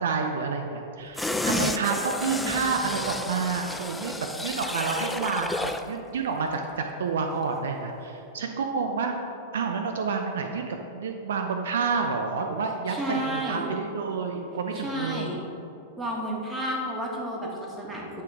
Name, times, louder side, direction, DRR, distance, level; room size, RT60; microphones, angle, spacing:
voice 1, 0.0-9.2 9.5-15.3, right 5 dB, 70° right, 4 dB, 0.5 m, -29 dB
sound 1, 1.2-5.9 6.3-6.4, left 2 dB, 5° left, 0.4 m, -31 dB
voice 2, 12.9-13.7 14.7-15.4 16.0-18.2, right 1 dB, 15° right, -3 dB, 1.7 m, -31 dB
9.6 x 3.9 x 4.8 m, 2.7 s
figure-of-eight pair, 95°, 0 cm